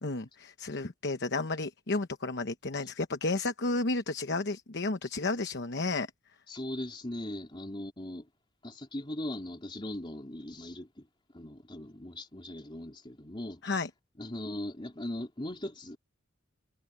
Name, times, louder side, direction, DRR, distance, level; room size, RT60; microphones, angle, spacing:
voice 1, 0.0-6.1 13.6-13.9, left 3 dB, 55° left, 1.0 m, -32 dB
voice 2, 6.5-8.3 8.6-11.1 11.3-13.6 14.2-16.0, left 1 dB, 25° left, 3.4 m, -39 dB
head